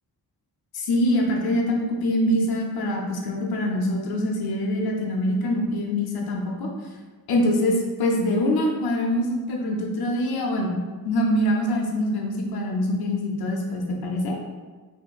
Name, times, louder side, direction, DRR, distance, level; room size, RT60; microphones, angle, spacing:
voice 1, 0.7-6.7 7.3-10.8 11.0-14.4, left 1 dB, 70° left, 0 dB, 0.8 m, -24 dB
4.4 x 3.0 x 2.3 m, 1.4 s
wide cardioid pair, 180°, 39 cm